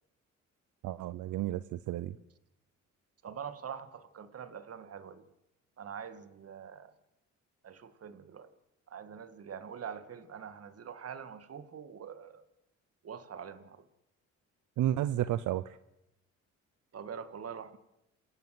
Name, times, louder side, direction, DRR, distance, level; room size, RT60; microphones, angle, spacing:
voice 1, 0.8-2.2 14.8-15.8, right 13 dB, 80° right, 14 dB, 0.8 m, -32 dB
voice 2, 3.2-5.3 5.8-6.9 7.6-8.5 8.9-12.4 13.0-13.9 16.9-17.8, right 7 dB, 50° right, 11 dB, 2.1 m, -44 dB
28.5 x 17.0 x 7.8 m, 0.87 s
cardioid pair, 90°, 30 cm